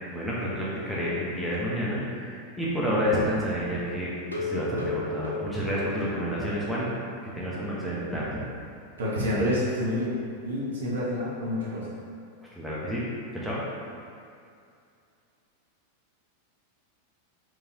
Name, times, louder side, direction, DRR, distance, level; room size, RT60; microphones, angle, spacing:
voice 1, 0.0-4.1 4.4-6.9 7.3-8.4 12.6-13.0 13.3-13.6, equal, 5° left, -8 dB, 1.0 m, -29 dB
sound 1, 4.2-6.8 7.1-7.2 7.6-7.7 8.0-8.1, left 2 dB, 80° left, 0.6 m, -34 dB
voice 2, 9.0-10.1 10.4-11.9, left 1 dB, 65° right, -7 dB, 1.1 m, -28 dB
4.6 x 3.3 x 2.9 m, 2.4 s
figure-of-eight pair, 90°, 0 cm